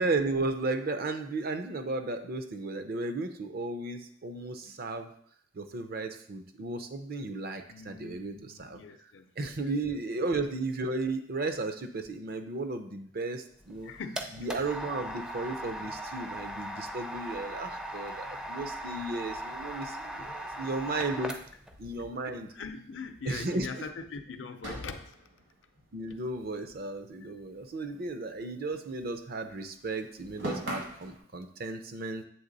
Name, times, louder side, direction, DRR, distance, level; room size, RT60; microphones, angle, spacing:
voice 1, 0.0-5.1 5.5-8.8 9.4-13.9 14.3-21.3 21.8-22.5 23.2-23.8 25.9-32.2, right 3 dB, 50° right, 7 dB, 0.6 m, -34 dB
voice 2, 7.7-9.7 13.8-14.4 20.2-20.3 20.6-20.7 22.3-25.1, left 5 dB, 65° left, 8 dB, 0.5 m, -42 dB
sound 1, 13.6-21.7, right 1 dB, 5° right, 0.4 m, -39 dB
sound 2, 21.7-23.0 23.4-23.5 23.8-23.9 24.6-27.1 27.3-29.2 29.4-31.2, equal, 70° right, 1.9 m, -43 dB
7.8 x 3.3 x 4.0 m, 0.62 s
head